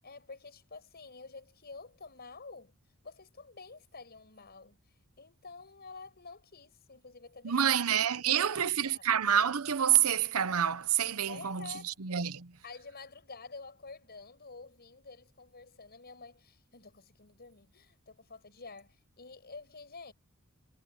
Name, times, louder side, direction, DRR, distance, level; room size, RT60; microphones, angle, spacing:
voice 1, 0.0-2.7 3.0-4.8 5.2-7.7 8.1-9.1 11.3-12.0 12.6-20.1, left 4 dB, 45° left, 6.8 m, -49 dB
voice 2, 7.4-12.6, right 9 dB, 75° right, 0.9 m, -28 dB
head